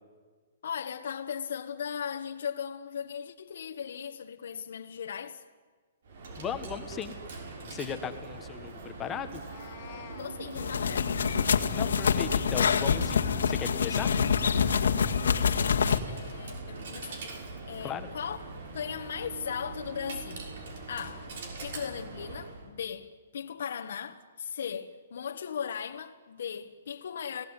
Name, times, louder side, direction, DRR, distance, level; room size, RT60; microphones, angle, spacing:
voice 1, 0.6-5.4 10.2-11.2 15.2-15.8 16.1-17.3 17.7-18.4 18.7-20.5 20.9-27.4, left 7 dB, 65° left, 1.5 m, -38 dB
Coin (dropping), 6.0-22.7, right 4 dB, 55° right, 6.2 m, -42 dB
voice 2, 6.4-7.1 7.6-9.4 11.7-14.1 17.8-18.1, left 8 dB, 15° left, 1.5 m, -37 dB
Meow, 9.2-10.3, left 10 dB, 40° left, 2.2 m, -49 dB
sound 1, 10.6-16.0, left 6 dB, 85° left, 1.9 m, -26 dB
29.5 x 19.0 x 9.8 m
hypercardioid pair, 165°, 0 cm